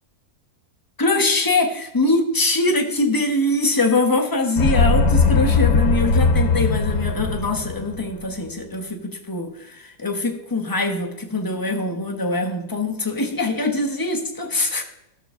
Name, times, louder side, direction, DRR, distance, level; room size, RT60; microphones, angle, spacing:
voice 1, 1.0-14.8, left 2 dB, 15° left, 3 dB, 0.8 m, -23 dB
sound 1, 4.6-8.1, left 4 dB, 85° left, 1.6 m, -19 dB
14.0 x 4.7 x 6.2 m, 0.89 s
omnidirectional pair, 1.9 m